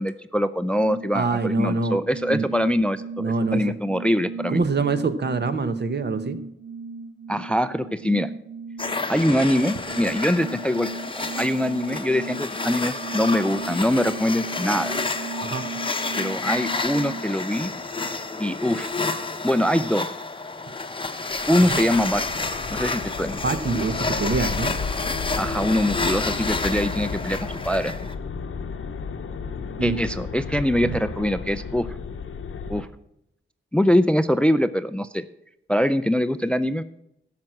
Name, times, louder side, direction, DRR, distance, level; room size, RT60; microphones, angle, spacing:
voice 1, 0.0-3.2 3.5-4.6 7.3-8.3 9.1-15.0 16.2-17.7 18.4-18.9 19.4-20.1 21.5-22.2 22.7-23.4 25.4-27.9 29.8-31.9 32.7-32.9 33.7-35.2 35.7-36.8, equal, 5° left, 13 dB, 0.4 m, -23 dB
voice 2, 1.1-2.0 2.3-2.5 3.2-3.7 4.5-6.4 9.3-9.4 15.4-15.7 21.6-21.8 23.4-24.7 29.8-30.0 30.8-30.9, right 4 dB, 55° right, 11 dB, 0.9 m, -25 dB
sound 1, 2.0-17.3, right 4 dB, 75° right, 2.2 m, -37 dB
sound 2, 8.8-28.1, left 3 dB, 25° left, 0.8 m, -30 dB
sound 3, 21.3-32.8, left 5 dB, 90° left, 0.9 m, -33 dB
12.0 x 5.9 x 7.6 m, 0.79 s
wide cardioid pair, 105°, 21 cm